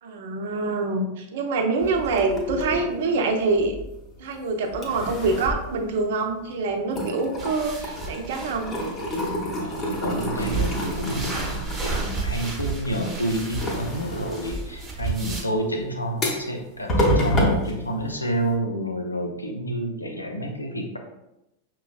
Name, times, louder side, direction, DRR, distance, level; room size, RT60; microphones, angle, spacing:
voice 1, 0.0-3.7 4.2-8.8, right 3 dB, 55° right, 3 dB, 0.6 m, -25 dB
sound 1, 1.8-4.3 4.7-6.5 6.8-18.5, equal, 25° left, 0.9 m, -29 dB
sound 2, 7.4-15.4, right 4 dB, 15° right, 1.0 m, -33 dB
voice 2, 9.6-21.0, right 1 dB, 80° left, 3 dB, 0.6 m, -29 dB
5.6 x 3.0 x 2.3 m, 0.88 s
figure-of-eight pair, 90°, 0 cm